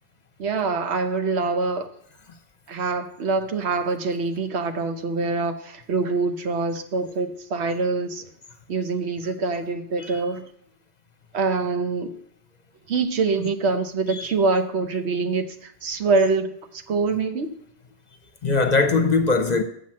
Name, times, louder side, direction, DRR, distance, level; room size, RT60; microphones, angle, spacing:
voice 1, 0.4-1.9 2.7-8.2 8.7-10.5 11.3-12.1 12.9-17.5, right 4 dB, 80° right, 1.1 m, -25 dB
voice 2, 18.4-19.6, left 3 dB, 45° left, 0.8 m, -21 dB
7.1 x 5.8 x 7.5 m
omnidirectional pair, 1.1 m